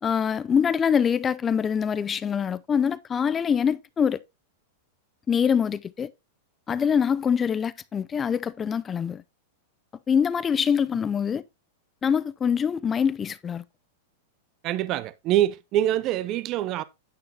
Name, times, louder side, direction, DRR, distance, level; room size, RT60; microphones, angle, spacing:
voice 1, 0.0-4.2 5.3-6.1 6.7-9.2 10.1-11.4 12.0-13.6, left 7 dB, 25° left, 0.4 m, -24 dB
voice 2, 14.6-16.8, right 12 dB, 45° right, 0.5 m, -25 dB
9.4 x 8.7 x 2.8 m
hypercardioid pair, 110°, 0 cm